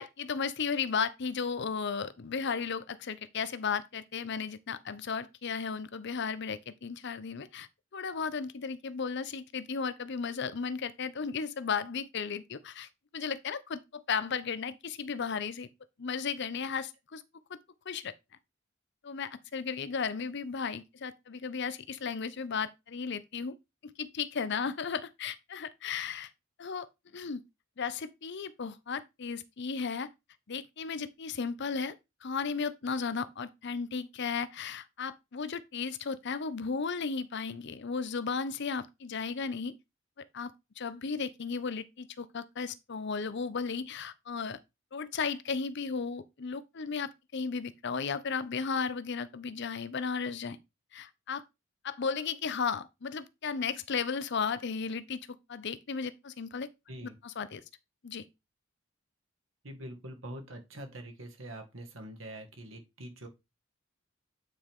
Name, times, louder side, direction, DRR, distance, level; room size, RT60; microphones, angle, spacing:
voice 1, 0.0-15.7 16.0-17.2 17.9-18.1 19.0-23.5 23.8-26.3 26.6-26.9 27.1-27.4 27.8-30.1 30.5-39.8 40.2-44.6 44.9-50.6 50.9-51.4 51.8-55.2 55.5-56.7 57.2-57.6 58.0-58.3, left 5 dB, 60° left, 0.7 m, -35 dB
voice 2, 59.6-63.3, right 1 dB, 75° right, 1.9 m, -44 dB
8.7 x 4.7 x 3.6 m
head